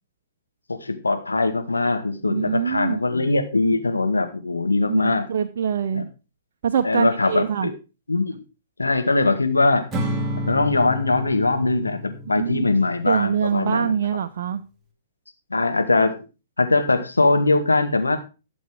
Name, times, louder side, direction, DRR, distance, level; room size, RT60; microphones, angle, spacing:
voice 1, 0.7-5.3 5.9-6.1 6.8-7.7 8.1-8.4 8.8-9.9 10.5-13.9 15.5-16.1 16.6-18.2, left 3 dB, 90° left, 7 dB, 1.8 m, -21 dB
voice 2, 2.2-3.0 4.9-6.0 6.6-7.7 12.3-12.7 13.1-14.6, right 8 dB, 55° right, 5 dB, 0.8 m, -24 dB
Acoustic guitar / Strum, 9.9-13.2, equal, 15° right, 2.4 m, -30 dB
12.5 x 7.2 x 4.8 m, 0.31 s
figure-of-eight pair, 120°, 0 cm